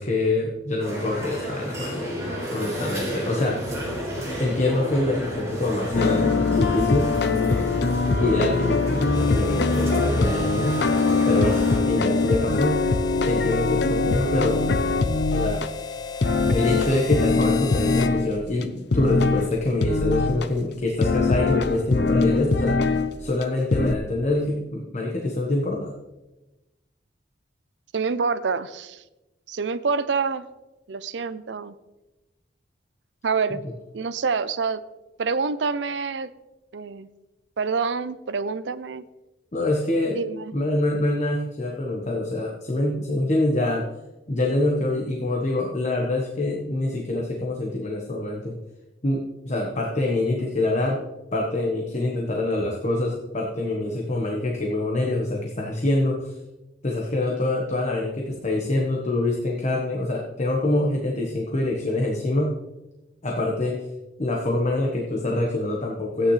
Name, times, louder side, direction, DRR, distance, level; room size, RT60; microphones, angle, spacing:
voice 1, 0.0-2.1 2.5-3.8 4.4-7.1 8.2-10.8 11.3-12.8 13.2-14.6 15.3-15.6 16.5-22.8 23.2-25.9 39.5-40.2 40.5-43.8 44.3-48.6 49.0-51.0 51.3-56.3 56.8-62.5 63.2-63.8 64.2-66.3, left 2 dB, 40° left, -1 dB, 1.2 m, -25 dB
sound 1, 0.8-11.8, equal, 15° right, 4.2 m, -31 dB
sound 2, 5.9-15.7 16.2-18.3 18.6-18.7 18.9-19.5 19.8-20.5 21.0-23.1 23.4-23.5 23.7-23.9, left 3 dB, 65° left, 0.6 m, -22 dB
Harmonica, 9.1-18.2, left 5 dB, 20° left, 0.4 m, -35 dB
voice 2, 27.9-29.0 29.5-30.5 30.9-31.7 33.2-33.6 33.9-34.8 35.2-36.3 36.7-37.1 37.6-39.0 40.2-40.5, right 5 dB, 75° right, 15 dB, 0.5 m, -27 dB
14.0 x 9.4 x 3.2 m, 1.0 s
head